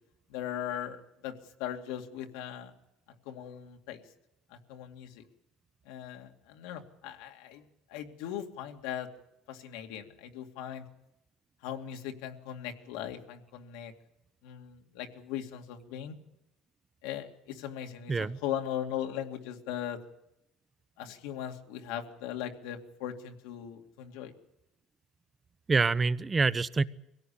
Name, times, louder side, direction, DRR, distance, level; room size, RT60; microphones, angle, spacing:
voice 1, 0.3-1.3 1.6-2.7 3.3-4.0 4.5-5.2 5.9-7.6 7.9-9.1 9.5-10.8 11.6-13.9 14.4-16.1 17.0-20.0 21.0-24.3, left 10 dB, 85° left, 4 dB, 2.3 m, -39 dB
voice 2, 18.1-18.4 25.7-26.8, right 4 dB, 20° right, 17 dB, 0.7 m, -26 dB
24.0 x 17.5 x 8.6 m, 0.86 s
cardioid pair, 120°, 0 cm